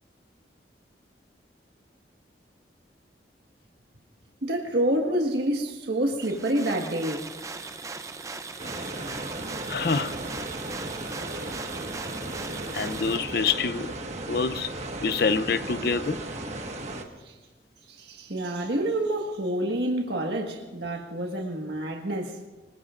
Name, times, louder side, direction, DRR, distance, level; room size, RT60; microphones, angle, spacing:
voice 1, 4.4-7.3 17.2-17.3 17.9-22.4, right 1 dB, 70° right, 1.6 m, -28 dB
sound 1, 6.2-13.2, right 4 dB, 20° right, 0.5 m, -39 dB
sound 2, 8.6-17.0, right 2 dB, 40° right, 1.5 m, -35 dB
voice 2, 9.7-10.2 12.7-13.9 14.3-14.7 15.0-16.2, left 5 dB, 60° left, 0.6 m, -26 dB
25.5 x 20.0 x 2.5 m
head